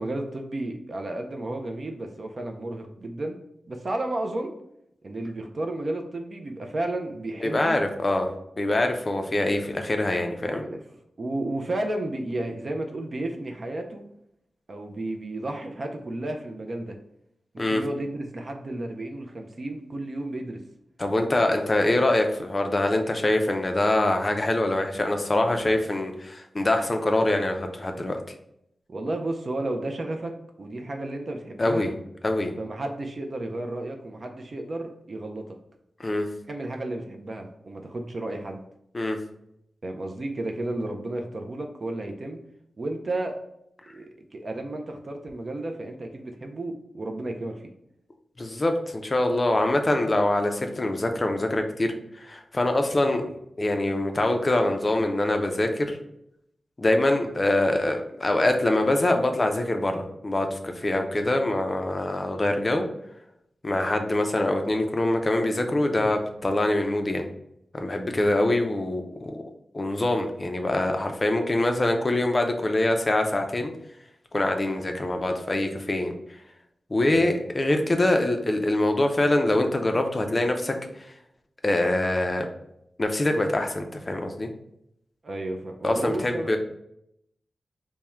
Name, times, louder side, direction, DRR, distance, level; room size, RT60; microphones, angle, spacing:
voice 1, 0.0-3.4 3.7-4.5 5.0-7.8 10.5-10.8 11.2-14.0 14.7-17.0 17.5-20.6 28.9-30.3 30.6-31.9 32.6-35.6 36.5-38.6 39.8-42.4 42.8-43.4 43.9-47.6 63.7-63.9 77.1-77.3 85.2-86.6, right 2 dB, 40° right, 3 dB, 0.4 m, -32 dB
voice 2, 7.4-8.3 8.6-10.6 17.6-17.8 21.0-28.2 31.6-31.9 32.2-32.5 36.0-36.3 38.9-39.2 48.4-53.2 53.6-56.0 56.8-62.9 63.6-67.3 67.7-69.4 69.7-73.7 74.3-76.1 76.9-80.8 81.6-82.5 83.0-84.5 85.8-86.6, left 1 dB, 25° left, 4 dB, 0.4 m, -24 dB
3.4 x 2.1 x 4.3 m, 0.77 s
wide cardioid pair, 160°, 0 cm